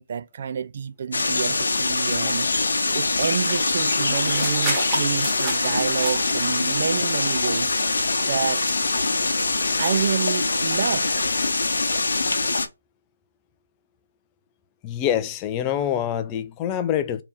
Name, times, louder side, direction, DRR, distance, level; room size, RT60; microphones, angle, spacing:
voice 1, 0.0-8.8 9.8-11.1, right 7 dB, 45° right, 0.4 m, -28 dB
sound 1, 1.1-12.7, left 3 dB, 65° left, 0.9 m, -23 dB
sound 2, 3.4-11.3, right 1 dB, 10° right, 1.5 m, -35 dB
voice 2, 14.8-17.2, left 10 dB, 20° left, 0.4 m, -25 dB
3.4 x 2.9 x 4.4 m
figure-of-eight pair, 145°, 0 cm